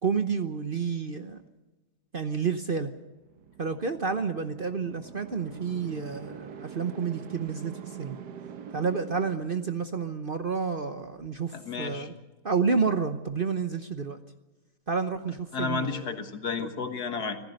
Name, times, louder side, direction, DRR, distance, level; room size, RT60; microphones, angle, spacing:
voice 1, 0.0-1.4 2.1-2.9 3.6-8.2 8.7-12.1 12.4-14.2 14.9-16.1 16.6-16.7, right 5 dB, 40° right, 9 dB, 1.0 m, -30 dB
sound 1, 3.1-10.1, right 7 dB, 85° right, 1.8 m, -44 dB
voice 2, 11.5-12.1 15.5-17.4, left 5 dB, 70° left, 7 dB, 2.2 m, -32 dB
25.5 x 15.5 x 6.6 m, 1.2 s
omnidirectional pair, 1.7 m